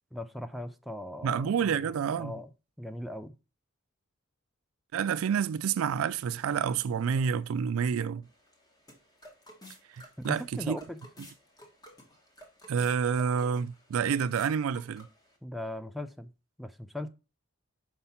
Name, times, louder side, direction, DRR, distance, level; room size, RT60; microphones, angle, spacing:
voice 1, 0.1-2.5 2.8-3.3 10.2-11.0 15.4-16.3 16.6-17.1, left 1 dB, ahead, 0.4 m, -39 dB
voice 2, 1.2-2.3 4.9-8.3 9.9-10.8 12.7-15.1, right 7 dB, 70° right, 0.3 m, -29 dB
sound 1, 8.2-15.4, equal, 20° left, 1.5 m, -54 dB
5.6 x 4.7 x 5.7 m
head